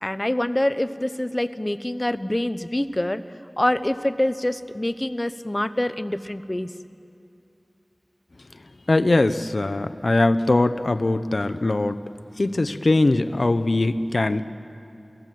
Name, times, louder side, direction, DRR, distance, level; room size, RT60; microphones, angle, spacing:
voice 1, 0.0-3.2 3.6-6.7, left 1 dB, 25° left, 12 dB, 0.8 m, -25 dB
voice 2, 8.9-12.0 12.4-14.4, left 2 dB, 70° left, 12 dB, 0.8 m, -21 dB
29.0 x 18.5 x 7.7 m, 2.6 s
wide cardioid pair, 55°, 0 cm